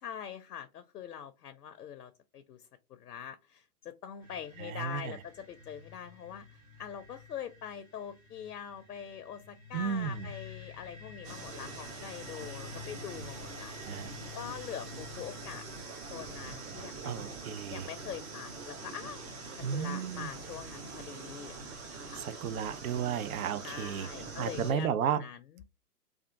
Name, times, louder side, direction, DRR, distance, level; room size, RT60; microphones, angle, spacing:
voice 1, 0.0-14.1 14.3-15.6 16.1-17.1 17.7-19.3 19.7-22.2 23.6-25.6, left 9 dB, 80° left, 0.6 m, -44 dB
sound 1, 4.2-20.8, left 5 dB, 10° left, 0.5 m, -51 dB
voice 2, 4.6-5.1 9.7-10.3 13.9-14.1 17.0-17.9 19.6-20.3 22.1-24.1 24.4-25.2, right 8 dB, 65° right, 0.5 m, -33 dB
sound 2, 11.2-24.7, right 4 dB, 45° right, 1.3 m, -44 dB
3.4 x 2.4 x 2.7 m
figure-of-eight pair, 125°, 48 cm